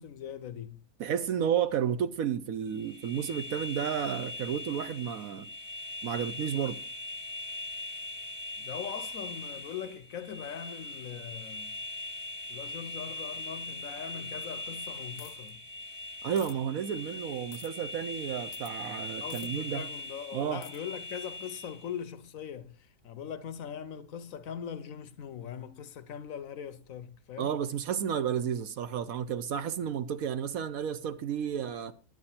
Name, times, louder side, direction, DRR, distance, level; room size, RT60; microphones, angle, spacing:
voice 1, 0.0-0.8 8.6-11.8 12.5-15.6 19.2-27.5, left 8 dB, 65° left, 1.0 m, -41 dB
voice 2, 1.0-5.5 6.0-6.8 16.2-19.9 20.3-20.6 27.4-31.9, right 8 dB, 65° right, 1.1 m, -32 dB
sound 1, 2.7-21.9, left 2 dB, 35° right, 2.5 m, -41 dB
sound 2, 15.2-15.5 16.4-16.6 17.5-17.7 18.5-18.7 19.3-19.5 20.6-20.8, left 12 dB, 85° left, 1.3 m, -48 dB
10.5 x 9.1 x 4.3 m
omnidirectional pair, 1.7 m